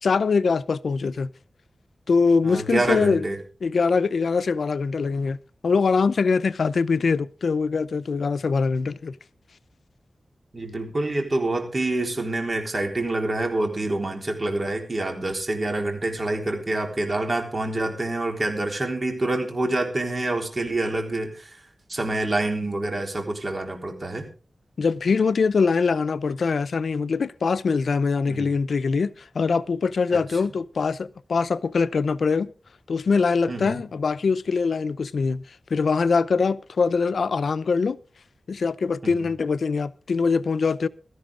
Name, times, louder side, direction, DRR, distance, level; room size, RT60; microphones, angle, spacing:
voice 1, 0.0-1.3 2.1-3.2 3.6-5.4 5.6-9.1 24.8-32.5 32.9-35.4 35.7-38.0 38.5-40.9, left 4 dB, 80° left, 0.6 m, -23 dB
voice 2, 2.4-3.4 10.5-21.6 21.9-24.3 28.3-28.5 30.1-30.2 33.5-33.8 39.0-39.3, right 2 dB, 40° right, 3.7 m, -27 dB
17.0 x 13.0 x 3.7 m
wide cardioid pair, 115°, 0 cm